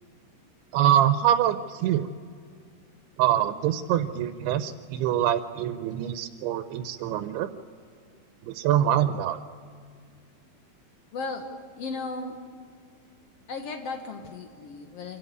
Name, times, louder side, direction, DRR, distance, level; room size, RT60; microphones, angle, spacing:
voice 1, 0.7-2.1 3.2-7.5 8.4-9.4, right 11 dB, 85° right, 10 dB, 2.7 m, -24 dB
voice 2, 11.1-12.4 13.5-15.2, left 3 dB, 80° left, 4 dB, 1.3 m, -35 dB
26.0 x 13.0 x 9.5 m, 2.1 s
omnidirectional pair, 4.6 m